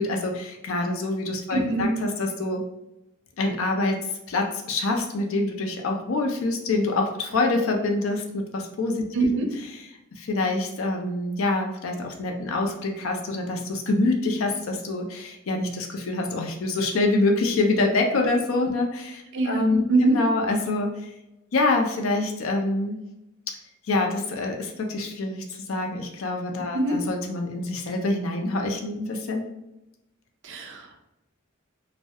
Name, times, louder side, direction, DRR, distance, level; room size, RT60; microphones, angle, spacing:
voice 1, 0.0-2.6 3.4-4.0 4.3-9.3 10.1-19.8 20.1-21.1 21.5-23.0 23.9-29.5, left 2 dB, 80° left, 3 dB, 0.4 m, -26 dB
voice 2, 1.5-1.9 9.1-9.5 19.3-20.2 26.7-27.0 30.4-31.0, right 2 dB, 60° right, 3 dB, 0.4 m, -23 dB
2.3 x 2.1 x 2.7 m, 0.93 s
head